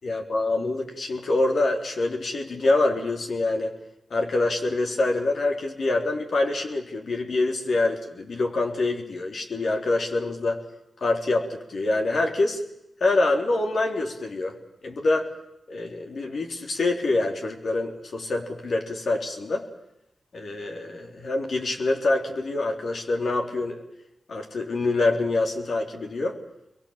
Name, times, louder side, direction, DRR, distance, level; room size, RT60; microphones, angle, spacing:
voice 1, 0.0-3.7 4.1-10.6 11.0-12.6 13.0-14.5 14.8-15.3 15.7-19.7 20.3-23.8 24.3-26.4, left 2 dB, 70° left, 2 dB, 3.6 m, -25 dB
28.0 x 22.5 x 7.4 m, 0.85 s
cardioid pair, 40°, 0 cm